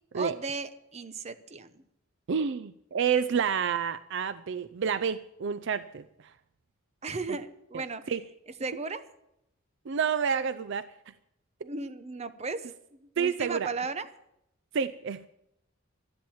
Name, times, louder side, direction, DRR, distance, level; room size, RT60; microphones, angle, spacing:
voice 1, 0.1-1.8 7.0-8.1 8.6-9.1 11.6-14.1, right 3 dB, 35° right, 11 dB, 0.8 m, -36 dB
voice 2, 2.3-6.0 7.7-7.8 8.1-8.2 9.9-10.9 13.2-13.7 14.7-15.3, right 6 dB, 60° right, 14 dB, 0.4 m, -29 dB
12.5 x 10.5 x 7.2 m, 0.80 s
head